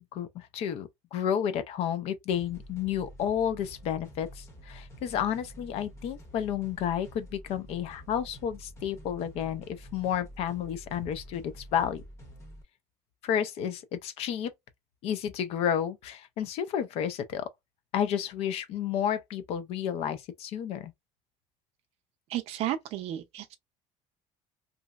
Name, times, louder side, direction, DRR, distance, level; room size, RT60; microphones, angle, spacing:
voice 1, 0.0-12.0 13.2-14.5 15.0-17.5 17.9-20.9, left 9 dB, 55° left, 0.5 m, -31 dB
sound 1, 2.3-12.6, equal, 20° left, 0.8 m, -48 dB
voice 2, 22.3-23.6, right 12 dB, 55° right, 0.5 m, -33 dB
3.0 x 2.6 x 2.3 m
cardioid pair, 170°, 12 cm